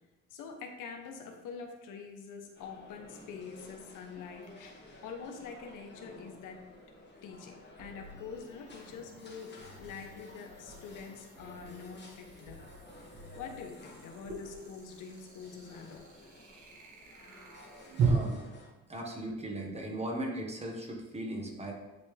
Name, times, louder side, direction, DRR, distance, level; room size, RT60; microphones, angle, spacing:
voice 1, 0.3-6.6 7.2-12.6 13.3-16.0 18.4-18.5, left 6 dB, 85° left, 3 dB, 1.0 m, -45 dB
sound 1, 2.5-18.7, left 1 dB, 35° left, 1.7 m, -53 dB
sound 2, 4.4-4.5 7.9-18.1, right 8 dB, 75° right, 1.9 m, -41 dB
sound 3, 7.8-9.3 9.6-12.9 13.1-13.7 14.0-14.6, left 1 dB, 50° right, 1.9 m, -54 dB
voice 2, 18.0-18.4 18.9-21.7, right 1 dB, 20° right, 1 dB, 1.5 m, -38 dB
10.5 x 3.5 x 3.3 m, 1.1 s
cardioid pair, 90°, 30 cm